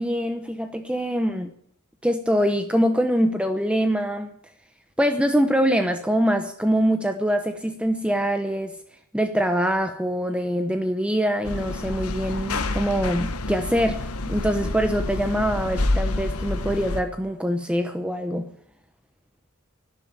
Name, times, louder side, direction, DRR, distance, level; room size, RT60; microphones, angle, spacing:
voice 1, 0.0-1.5 2.0-4.3 5.0-8.8 9.1-18.5, equal, 5° right, 7 dB, 0.9 m, -24 dB
sound 1, 11.4-17.0, left 2 dB, 80° left, 1.5 m, -28 dB
12.5 x 11.0 x 9.6 m, 0.72 s
head